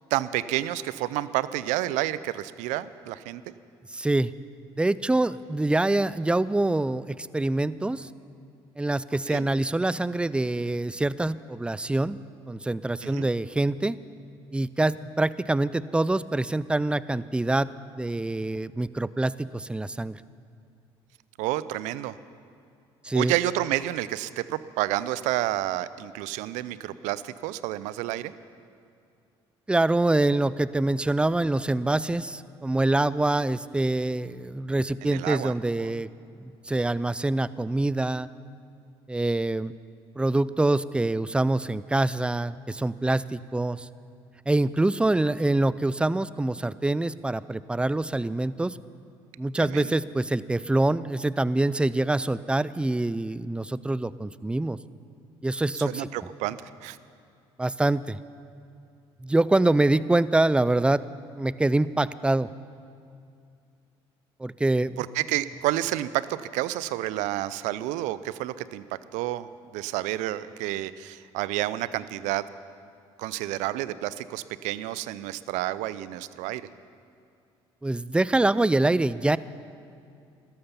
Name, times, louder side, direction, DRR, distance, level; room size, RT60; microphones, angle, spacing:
voice 1, 0.1-3.4 9.3-9.5 13.0-13.3 21.4-22.2 23.1-28.3 35.0-35.5 35.8-35.9 49.6-50.0 55.7-57.0 65.0-68.8 69.1-72.4 73.2-76.6, right 15 dB, 75° right, 16 dB, 0.5 m, -30 dB
voice 2, 3.9-4.3 4.8-8.1 8.8-12.2 12.5-14.0 14.5-20.2 23.0-23.3 29.7-36.1 36.4-38.3 39.1-39.7 40.2-43.9 44.5-48.8 49.4-54.8 55.4-56.1 57.6-58.2 59.2-61.0 61.3-62.5 64.4-65.0 77.8-79.4, right 2 dB, 10° right, 17 dB, 0.4 m, -25 dB
16.5 x 13.0 x 5.7 m, 2.4 s
hypercardioid pair, 65°, 13 cm